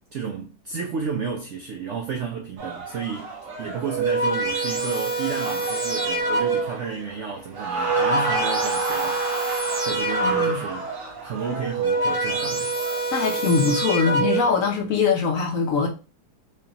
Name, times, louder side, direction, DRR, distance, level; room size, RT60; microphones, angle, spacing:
voice 1, 0.1-9.2 9.8-10.9 11.2-12.7, right 6 dB, 70° right, 0.6 m, -32 dB
sound 1, 2.6-13.8, right 3 dB, 55° right, 1.1 m, -33 dB
sound 2, 3.7-6.9 7.6-10.8 11.5-14.7, right 3 dB, 40° right, 1.5 m, -25 dB
voice 2, 10.2-10.6 13.1-15.9, left 5 dB, 65° left, 0.9 m, -22 dB
4.5 x 2.7 x 2.8 m
omnidirectional pair, 1.8 m